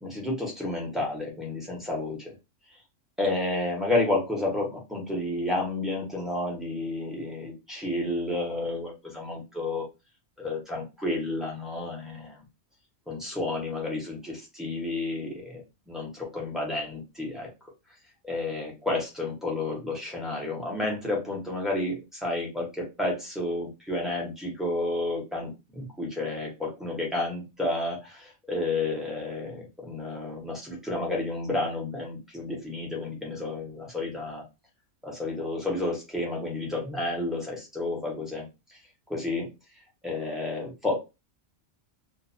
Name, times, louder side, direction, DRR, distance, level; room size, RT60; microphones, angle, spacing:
voice 1, 0.0-2.3 3.2-9.8 10.4-12.4 13.1-15.6 15.9-17.5 18.2-34.4 35.0-38.4 39.1-39.5 40.0-41.0, left 2 dB, ahead, -3 dB, 1.0 m, -31 dB
2.6 x 2.4 x 2.6 m, 0.26 s
omnidirectional pair, 1.3 m